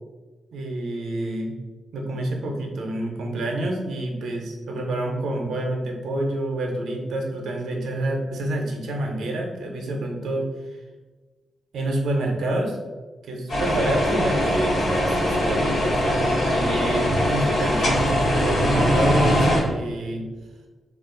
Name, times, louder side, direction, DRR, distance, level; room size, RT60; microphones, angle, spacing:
voice 1, 0.5-1.5 1.9-10.8 11.7-12.8 13.3-20.3, right 1 dB, 85° right, 1 dB, 0.5 m, -28 dB
sound 1, 13.5-19.6, equal, 60° left, 1.2 m, -21 dB
2.4 x 2.3 x 3.7 m, 1.3 s
wide cardioid pair, 170°, 0 cm